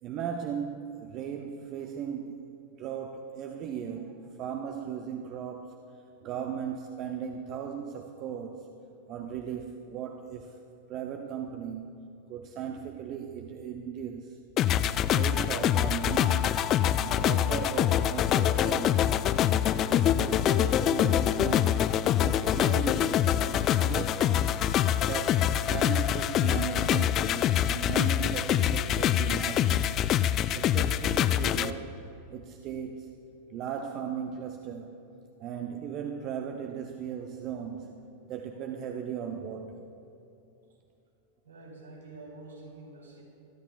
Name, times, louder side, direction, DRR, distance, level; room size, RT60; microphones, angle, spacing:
voice 1, 0.0-2.4 2.8-5.8 6.2-8.7 9.1-10.5 10.9-12.0 12.3-14.4 15.1-16.6 17.0-19.2 19.7-21.9 22.2-24.4 25.1-27.2 27.7-29.9 30.5-32.0 32.3-33.1 33.5-35.0 35.4-37.9 38.2-39.8, right 8 dB, 35° right, 4 dB, 0.7 m, -37 dB
sound 1, 14.6-31.7, left 10 dB, 35° left, 0.3 m, -25 dB
voice 2, 41.4-43.2, right 2 dB, 75° right, -4 dB, 3.4 m, -47 dB
22.0 x 12.0 x 2.4 m, 2.7 s
figure-of-eight pair, 90°, 0 cm